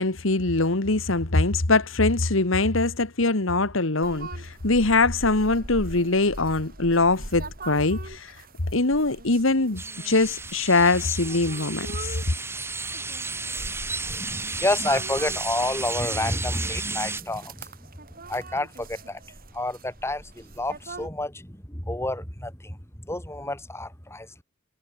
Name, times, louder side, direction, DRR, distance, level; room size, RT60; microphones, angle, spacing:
voice 1, 0.0-8.4 8.7-12.1, left 3 dB, 75° left, 1.9 m, -23 dB
sound 1, 4.0-21.1, right 2 dB, 45° right, 5.2 m, -42 dB
sound 2, 9.8-17.2, right 3 dB, 10° right, 1.6 m, -33 dB
voice 2, 13.3-17.9 18.3-19.2 19.5-24.4, left 1 dB, 15° left, 7.3 m, -30 dB
head